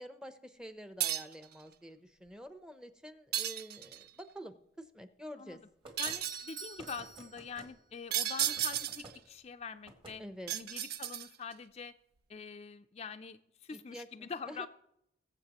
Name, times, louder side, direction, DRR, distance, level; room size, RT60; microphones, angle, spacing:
voice 1, 0.0-4.5 4.9-5.6 10.2-10.5 13.7-14.7, equal, 5° right, 9 dB, 0.7 m, -48 dB
sound 1, 1.0-1.5 3.3-4.1 6.0-6.5 8.1-9.2 10.5-11.5, right 11 dB, 60° right, 0.5 m, -34 dB
sound 2, 5.8-6.2 6.8-7.7 8.4-9.2 9.8-10.2, right 2 dB, 30° right, 1.9 m, -52 dB
voice 2, 6.0-10.2 10.5-11.9 12.3-14.7, left 5 dB, 35° left, 8 dB, 0.4 m, -44 dB
Doorbell, 6.2-8.0, right 5 dB, 75° right, 3.5 m, -48 dB
21.5 x 7.5 x 3.0 m, 0.77 s
head